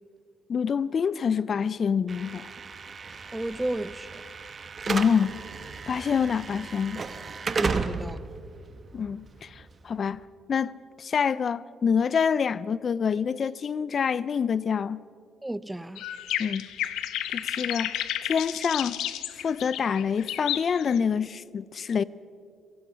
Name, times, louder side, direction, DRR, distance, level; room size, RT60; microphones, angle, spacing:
voice 1, 0.5-2.5 4.9-5.4 5.9-7.0 8.9-15.0 16.4-16.7 17.3-19.0 19.3-22.0, left 6 dB, 50° left, 0.4 m, -27 dB
Slam / Alarm, 2.1-10.2, right 5 dB, 40° right, 1.1 m, -35 dB
voice 2, 3.3-4.2 7.6-8.2 15.4-16.0, right 1 dB, 10° right, 0.5 m, -32 dB
sound 1, 16.0-21.0, left 12 dB, 85° left, 0.9 m, -32 dB
25.5 x 17.5 x 5.7 m
cardioid pair, 90°, 0 cm